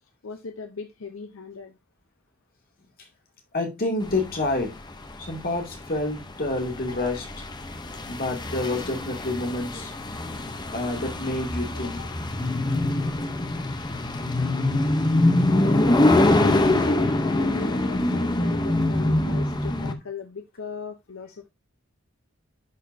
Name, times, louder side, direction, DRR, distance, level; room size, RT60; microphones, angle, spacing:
voice 1, 0.2-1.8 6.9-7.2 11.7-12.2 15.5-21.5, left 4 dB, 70° left, 6 dB, 0.7 m, -38 dB
voice 2, 3.5-4.7 5.2-7.3 8.1-9.9 10.7-12.0, left 2 dB, 45° left, 2 dB, 2.3 m, -28 dB
sound 1, 4.1-19.9, left 2 dB, 20° left, 0.7 m, -24 dB
11.5 x 4.3 x 2.7 m, 0.21 s
head